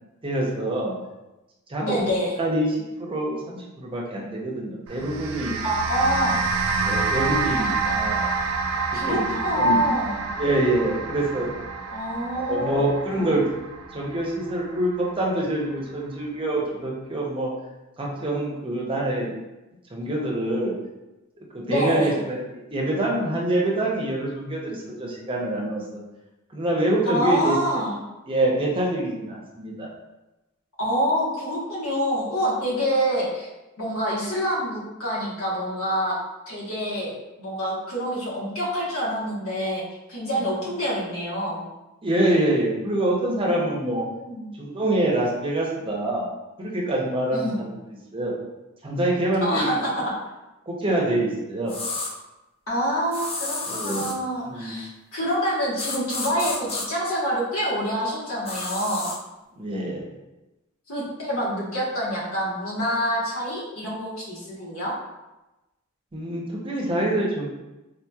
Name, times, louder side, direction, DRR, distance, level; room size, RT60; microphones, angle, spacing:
voice 1, 0.2-0.9 1.7-2.1 2.4-5.5 6.8-8.2 9.0-9.8 10.4-11.5 12.3-13.4 13.9-17.5 18.0-19.3 19.9-20.7 21.4-26.0 26.5-27.6 28.3-29.9 42.0-44.1 44.6-46.3 46.6-47.7 48.1-48.3 48.8-49.8 50.7-51.7 53.7-54.1 54.5-54.8 59.6-60.1 66.1-67.5, right 1 dB, 25° right, -3 dB, 0.6 m, -25 dB
voice 2, 1.8-2.4 5.6-6.4 8.9-10.3 11.9-12.9 13.2-13.3 21.7-22.2 27.0-28.0 30.8-33.5 33.8-36.2 36.5-39.8 40.1-41.7 43.5-43.6 44.3-44.5 47.3-47.6 49.4-50.1 52.7-59.1 60.9-65.0, equal, 80° left, -5 dB, 1.2 m, -26 dB
sound 1, 4.9-15.4, right 4 dB, 80° right, 0.4 m, -28 dB
sound 2, 51.7-52.1 53.1-54.2 55.8-56.9 58.5-59.2, left 3 dB, 30° left, 0.5 m, -31 dB
4.0 x 2.8 x 2.3 m, 1.0 s
head